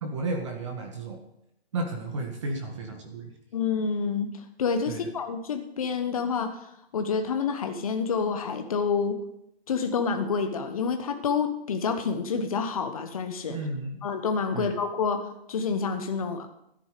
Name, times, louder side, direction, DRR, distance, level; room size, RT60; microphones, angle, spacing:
voice 1, 0.0-1.2 1.7-3.3 4.9-5.1 13.5-14.1 14.5-14.7, right 2 dB, 30° right, 3 dB, 1.6 m, -33 dB
voice 2, 3.5-4.3 4.6-6.5 6.9-9.2 9.7-13.6 14.0-16.5, left 5 dB, 35° left, 6 dB, 1.2 m, -28 dB
13.5 x 10.0 x 5.0 m, 0.80 s
hypercardioid pair, 170°, 32 cm